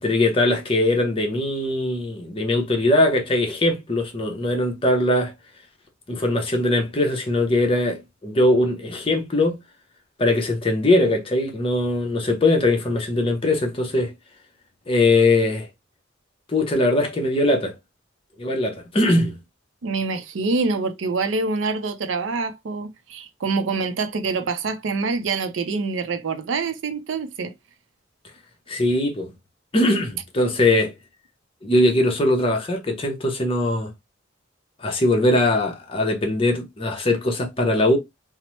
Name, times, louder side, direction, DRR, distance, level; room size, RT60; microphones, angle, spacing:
voice 1, 0.0-5.3 6.1-9.6 10.2-14.1 14.9-15.7 16.5-17.7 18.4-19.4 28.7-29.3 29.7-30.9 31.6-33.9 34.8-38.0, left 1 dB, 30° left, 0.7 m, -21 dB
voice 2, 19.8-27.5, right 4 dB, 85° right, 0.5 m, -26 dB
2.9 x 2.0 x 3.0 m
head